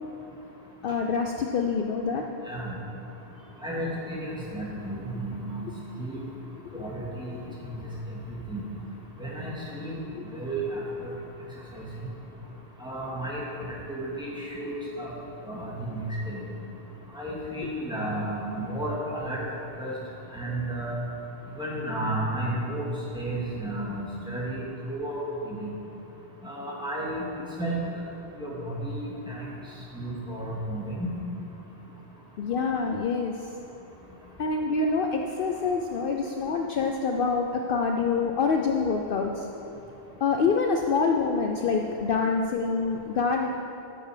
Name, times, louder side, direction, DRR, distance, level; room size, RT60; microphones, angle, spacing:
voice 1, 0.8-2.2 6.7-6.9 10.1-10.2 32.4-33.5 34.4-39.5 40.2-43.5, left 4 dB, 60° left, 2 dB, 0.7 m, -26 dB
voice 2, 2.4-2.7 3.6-5.7 6.0-6.2 6.7-7.4 7.6-7.7 8.5-8.6 9.2-9.9 10.3-11.1 11.7-11.9 12.8-13.4 13.9-14.7 15.0-15.1 15.4-16.4 17.1-19.4 19.8-19.9 20.3-21.0 21.6-22.8 23.1-25.7 26.4-27.2 27.6-27.8 28.4-29.5 29.9-31.1, right 1 dB, 5° right, -7 dB, 2.1 m, -32 dB
13.0 x 6.6 x 5.0 m, 2.9 s
omnidirectional pair, 1.1 m